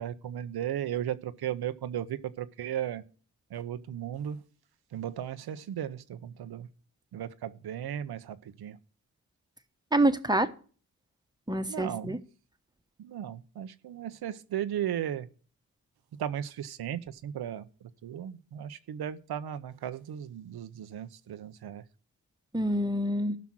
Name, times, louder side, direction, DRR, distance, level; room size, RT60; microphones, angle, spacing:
voice 1, 0.0-3.0 3.5-4.4 4.9-6.7 7.1-8.8 11.7-12.2 13.0-15.3 16.2-17.6 18.0-21.8, right 10 dB, 85° right, 13 dB, 0.8 m, -36 dB
voice 2, 9.9-10.5 11.5-12.2 22.5-23.3, right 1 dB, 10° right, 9 dB, 1.2 m, -26 dB
13.5 x 6.0 x 6.0 m, 0.42 s
cardioid pair, 45°, 37 cm